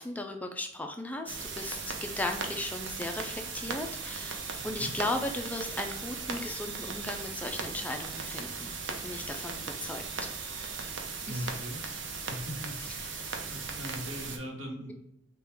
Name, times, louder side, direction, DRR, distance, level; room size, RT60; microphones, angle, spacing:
voice 1, 0.0-8.8 9.0-10.3 11.3-11.5 12.8-13.1, left 1 dB, 10° left, 4 dB, 0.3 m, -36 dB
sound 1, 1.3-14.4, right 4 dB, 70° right, 0.6 m, -38 dB
sound 2, 2.8-11.3, right 3 dB, 45° right, 1.2 m, -54 dB
voice 2, 4.6-4.9 11.3-11.8 12.3-12.8 13.5-14.9, equal, 90° right, 1 dB, 1.0 m, -39 dB
3.6 x 2.2 x 4.3 m, 0.79 s
head